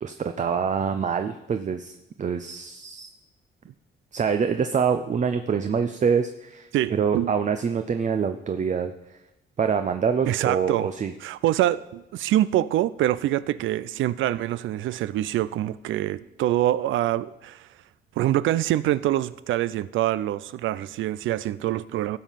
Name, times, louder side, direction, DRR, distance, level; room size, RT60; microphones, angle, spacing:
voice 1, 0.0-3.1 4.1-8.9 9.6-11.1, right 6 dB, 40° right, 8 dB, 0.6 m, -25 dB
voice 2, 6.7-7.3 10.3-10.9 11.2-17.7 18.2-22.2, right 13 dB, 80° right, 17 dB, 0.5 m, -25 dB
15.5 x 5.4 x 5.8 m, 0.93 s
cardioid pair, 90°, 20 cm